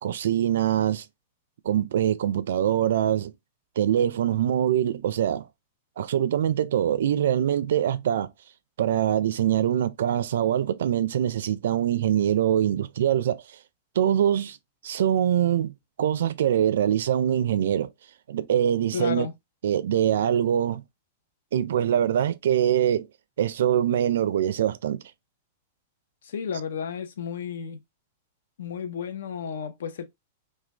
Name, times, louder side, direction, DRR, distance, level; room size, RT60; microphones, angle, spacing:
voice 1, 0.0-1.0 1.6-3.3 3.8-5.5 6.0-8.3 8.8-13.4 14.0-14.6 14.8-17.9 18.3-19.3 19.6-20.8 21.5-23.1 23.4-25.0, right 10 dB, 65° right, 0.4 m, -23 dB
voice 2, 18.9-19.3 26.2-27.8 28.6-30.0, left 7 dB, 80° left, 0.6 m, -32 dB
3.2 x 2.2 x 2.8 m
supercardioid pair, 180°, 0 cm